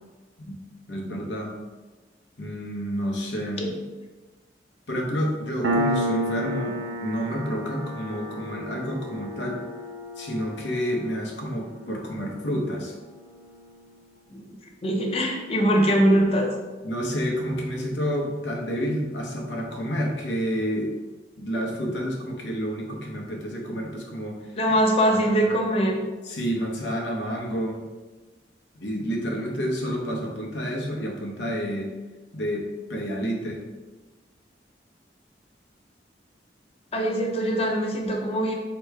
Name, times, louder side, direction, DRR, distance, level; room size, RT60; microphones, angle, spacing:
voice 1, 0.9-1.5 2.4-3.6 4.9-9.6 10.2-12.9 16.8-20.9 21.4-24.4 25.1-25.5 26.2-27.8 28.7-31.9 32.3-32.6 32.9-33.6, equal, 90° left, 0 dB, 0.9 m, -29 dB
Piano, 5.6-12.8, equal, 85° right, 0.6 m, -31 dB
voice 2, 14.8-16.5 24.6-26.0 36.9-38.5, equal, 35° left, 1 dB, 0.6 m, -22 dB
3.2 x 3.0 x 4.6 m, 1.2 s
head